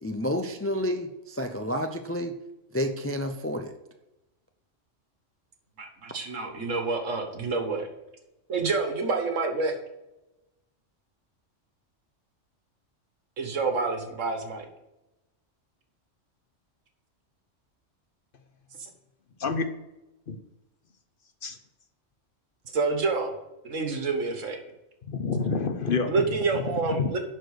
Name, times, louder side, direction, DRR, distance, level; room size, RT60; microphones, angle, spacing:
voice 1, 0.0-2.3 2.7-3.7, equal, 20° left, 5 dB, 0.4 m, -30 dB
voice 2, 5.8-7.9 8.5-9.8 13.4-14.6 18.8-18.9 22.7-23.3 23.6-24.6 26.1-27.2, right 4 dB, 80° right, 4 dB, 1.7 m, -28 dB
voice 3, 25.1-27.2, left 4 dB, 50° left, 8 dB, 0.9 m, -29 dB
11.0 x 4.5 x 6.5 m, 0.98 s
omnidirectional pair, 1.3 m